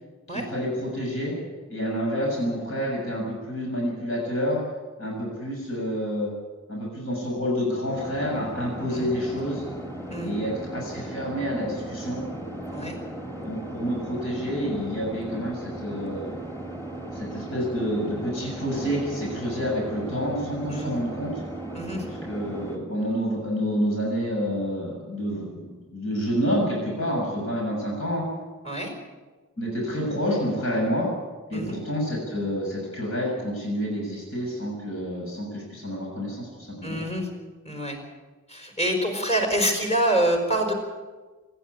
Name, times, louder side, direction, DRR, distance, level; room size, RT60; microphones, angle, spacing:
voice 1, 0.3-1.3 1.7-4.6 5.0-6.3 6.7-9.6 10.2-12.2 13.4-16.3 17.1-21.3 22.0-28.3 29.6-31.1 31.5-37.0, equal, 70° left, -2 dB, 7.2 m, -28 dB
sound 1, 7.9-22.8, right 1 dB, 15° left, 3.0 m, -36 dB
voice 2, 21.7-22.0 28.6-28.9 31.5-31.8 36.8-37.3 37.6-38.0 38.5-40.7, right 1 dB, 30° left, 3 dB, 5.2 m, -26 dB
26.0 x 11.5 x 9.7 m, 1.3 s
head